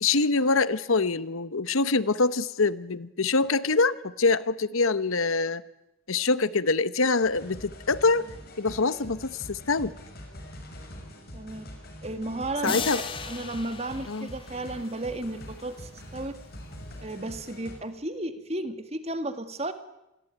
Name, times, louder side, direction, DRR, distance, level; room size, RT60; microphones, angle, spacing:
voice 1, 0.0-5.6 6.1-8.3 8.6-9.9 12.6-13.0 14.1-14.3, left 3 dB, 75° left, 16 dB, 1.0 m, -25 dB
sound 1, 7.2-17.7, equal, 45° left, 6.3 m, -44 dB
voice 2, 11.3-11.7 12.0-16.4 17.0-19.7, right 2 dB, 30° right, 10 dB, 2.0 m, -34 dB
sound 2, 12.6-15.4, left 5 dB, 25° left, 2.0 m, -36 dB
27.5 x 21.0 x 9.3 m, 0.90 s
head